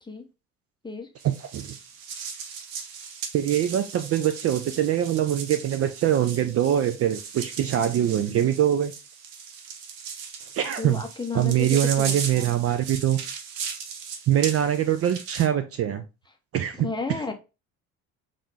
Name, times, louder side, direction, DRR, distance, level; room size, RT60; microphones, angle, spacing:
sound 1, 1.2-15.5, right 6 dB, 70° right, 0.8 m, -37 dB
voice 1, 3.3-8.9 10.5-11.0 11.3-13.2 14.3-16.0 16.5-16.9, right 11 dB, 35° right, 9 dB, 0.4 m, -23 dB
voice 2, 10.8-12.5 16.7-17.3, left 4 dB, 10° left, 5 dB, 0.6 m, -33 dB
3.5 x 2.4 x 3.2 m, 0.28 s
hypercardioid pair, 55°, 41 cm